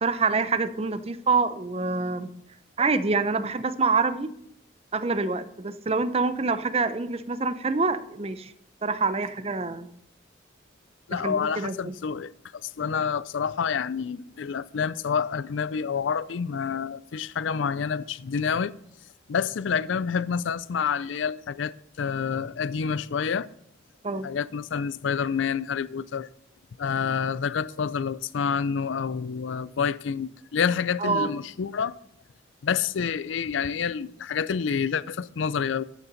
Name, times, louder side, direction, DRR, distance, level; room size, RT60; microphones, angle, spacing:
voice 1, 0.0-2.3 2.8-4.3 4.9-8.5 8.8-9.9 11.2-11.9 24.0-24.3 31.0-31.3, right 4 dB, 30° right, 0.6 m, -26 dB
voice 2, 11.1-12.3 12.6-18.7 19.3-21.7 22.0-23.5 24.2-26.3 26.8-32.0 32.6-35.8, left 6 dB, 75° left, 0.4 m, -28 dB
13.0 x 8.5 x 4.0 m
head